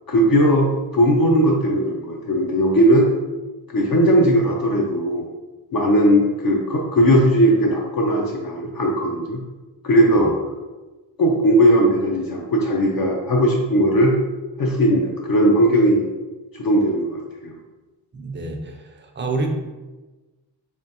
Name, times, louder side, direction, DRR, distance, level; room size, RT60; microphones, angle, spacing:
voice 1, 0.1-0.7 0.9-3.1 3.7-5.2 5.7-9.4 9.8-10.5 11.2-14.1 14.6-16.1 16.6-17.5, equal, 55° left, -1 dB, 0.5 m, -18 dB
voice 2, 18.1-19.5, right 3 dB, 25° right, 2 dB, 0.4 m, -28 dB
3.5 x 3.2 x 2.7 m, 1.2 s
wide cardioid pair, 155°, 44 cm